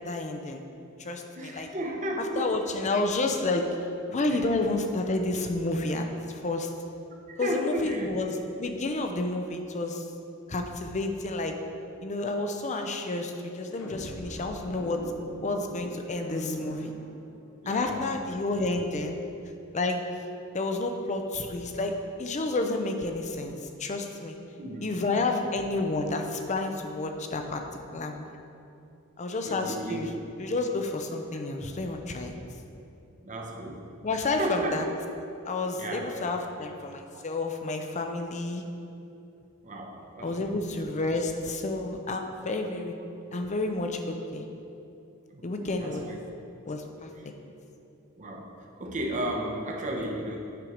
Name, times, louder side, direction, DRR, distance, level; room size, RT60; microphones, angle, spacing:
voice 1, 0.0-0.6 1.0-1.7 2.4-3.7 4.1-6.7 7.4-10.1 10.5-11.6 12.0-15.1 15.4-16.9 17.7-19.2 19.7-20.0 20.5-24.4 24.8-27.6 27.9-28.3 29.2-30.1 30.4-32.3 34.0-34.9 35.4-38.6 40.2-43.0 43.3-44.5 45.4-46.1 46.6-47.1, left 2 dB, 35° left, 5 dB, 0.6 m, -30 dB
voice 2, 1.4-2.6 4.3-4.6 7.3-8.2 17.6-18.3 24.6-24.9 29.4-30.2 30.4-30.5 33.2-33.9 34.1-34.8 35.7-36.1 37.1-37.2 39.6-40.6 45.3-46.1 48.2-50.4, right 1 dB, 35° right, 1 dB, 0.9 m, -34 dB
sound 1, 13.6-17.8, equal, 75° left, 1.0 m, -41 dB
9.1 x 4.6 x 5.1 m, 2.8 s
head